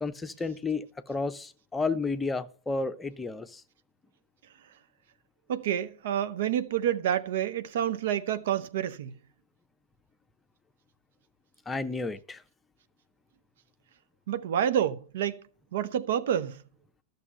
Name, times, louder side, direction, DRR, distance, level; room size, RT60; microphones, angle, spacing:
voice 1, 0.0-3.6 11.7-12.4, left 3 dB, 10° left, 0.8 m, -32 dB
voice 2, 5.5-9.1 14.3-15.4 15.7-16.6, right 10 dB, 55° right, 0.7 m, -28 dB
12.5 x 6.7 x 6.5 m
figure-of-eight pair, 90°, 0 cm